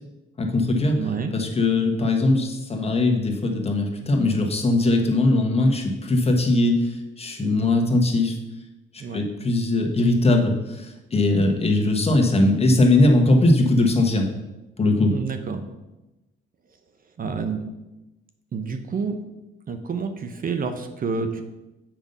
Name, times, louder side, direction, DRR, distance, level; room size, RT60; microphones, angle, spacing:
voice 1, 0.4-8.4 8.9-14.3 14.8-15.1, left 2 dB, 30° left, 3 dB, 1.4 m, -20 dB
voice 2, 1.0-1.3 7.4-7.7 9.0-9.2 15.1-15.6 17.2-17.6 18.5-19.2 19.7-21.4, right 5 dB, 45° right, 7 dB, 0.9 m, -28 dB
7.4 x 5.4 x 5.4 m, 1.0 s
cardioid pair, 90°, 20 cm